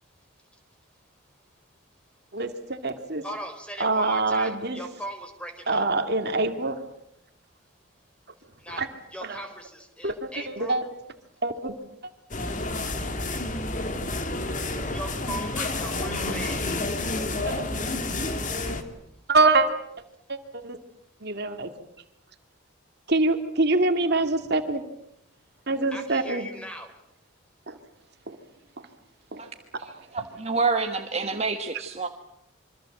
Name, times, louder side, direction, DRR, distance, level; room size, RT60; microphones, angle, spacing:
voice 1, 2.3-3.2 3.8-4.8 5.7-6.8 8.7-8.9 9.2-9.4 10.0-10.9 11.4-11.7 17.5-17.6 19.3-19.7 20.3-20.8 21.2-21.7 23.1-24.8 25.7-26.5 27.7-27.8 28.3-28.4 29.3-29.5 29.7-30.0 31.3-31.4, right 3 dB, 50° right, 7 dB, 2.1 m, -25 dB
voice 2, 3.2-5.8 8.6-8.8 9.1-10.8 14.9-16.7 25.9-26.9, equal, 5° left, 6 dB, 4.0 m, -38 dB
sound 1, 12.3-18.8, left 2 dB, 40° left, 2.5 m, -29 dB
voice 3, 30.1-32.1, right 4 dB, 30° right, 5 dB, 1.4 m, -27 dB
26.5 x 24.5 x 7.8 m, 0.76 s
head